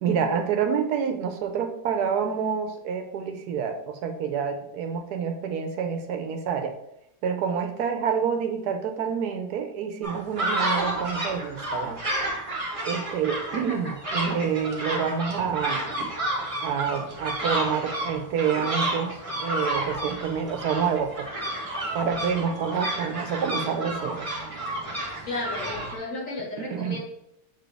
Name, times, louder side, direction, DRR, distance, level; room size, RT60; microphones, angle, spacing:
voice 1, 0.0-6.7 7.2-12.0 12.8-15.8 16.6-21.3 21.9-24.3 26.6-27.0, right 7 dB, 85° right, 6 dB, 1.2 m, -28 dB
sound 1, 10.0-26.0, right 1 dB, 25° right, 1.2 m, -31 dB
voice 2, 25.3-27.0, left 2 dB, 55° left, -3 dB, 2.0 m, -33 dB
7.0 x 4.0 x 3.4 m, 0.80 s
omnidirectional pair, 1.7 m